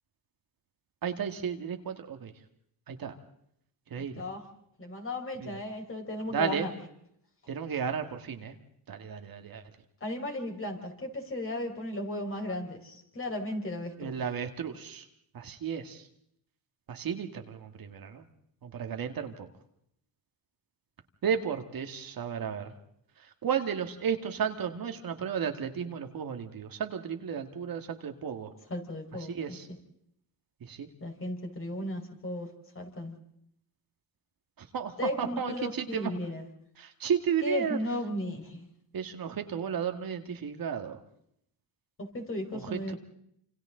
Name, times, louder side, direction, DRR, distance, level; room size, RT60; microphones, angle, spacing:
voice 1, 1.0-2.3 2.9-3.1 3.9-4.2 5.4-5.6 6.3-6.7 7.5-8.6 8.9-9.6 14.0-15.1 15.3-16.1 16.9-18.3 18.6-19.5 21.2-22.7 23.2-28.5 29.3-29.7 30.6-30.9 34.6-36.1 36.8-37.8 38.9-41.0 42.5-42.9, right 7 dB, 55° right, 6 dB, 1.9 m, -33 dB
voice 2, 4.8-6.7 10.0-14.1 28.7-29.5 31.0-32.5 32.7-33.1 35.0-36.4 37.4-38.7 42.0-43.0, left 1 dB, 30° left, 2 dB, 4.9 m, -35 dB
28.0 x 27.0 x 3.9 m, 0.74 s
cardioid pair, 95°, 41 cm